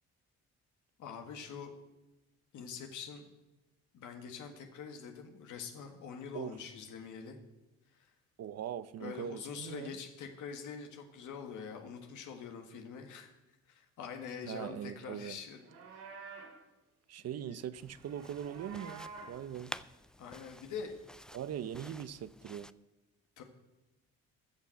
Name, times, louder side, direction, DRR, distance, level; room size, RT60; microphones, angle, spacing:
voice 1, 1.0-1.7 2.5-3.3 3.9-7.4 7.9-8.1 9.0-13.4 13.7-15.6 15.9-16.0 17.5-17.6 20.2-21.0 23.4-23.5, left 6 dB, 80° left, 4 dB, 1.7 m, -45 dB
voice 2, 8.4-9.9 14.4-15.4 17.1-19.7 21.3-22.7, right 9 dB, 55° right, 16 dB, 0.7 m, -41 dB
Livestock farm animals working animals, 15.5-16.6 17.9-19.4, right 4 dB, 85° right, 2.6 m, -49 dB
sound 1, 17.7-22.7, left 1 dB, ahead, 0.3 m, -51 dB
14.5 x 6.4 x 7.7 m, 1.0 s
cardioid pair, 90°, 30 cm